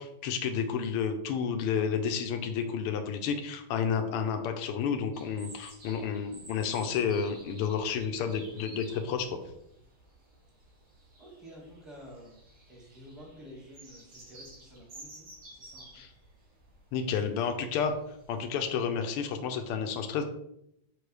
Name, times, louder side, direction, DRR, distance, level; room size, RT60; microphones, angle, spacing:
voice 1, 0.0-9.4 15.9-16.1 16.9-17.9 18.3-20.2, left 6 dB, 85° left, 6 dB, 1.6 m, -31 dB
sound 1, 5.1-18.6, right 1 dB, 75° right, 2.8 m, -53 dB
voice 2, 11.2-12.4 12.7-15.2 15.5-16.0 17.2-17.5, equal, ahead, -3 dB, 1.3 m, -50 dB
6.2 x 5.2 x 3.3 m, 0.78 s
omnidirectional pair, 2.4 m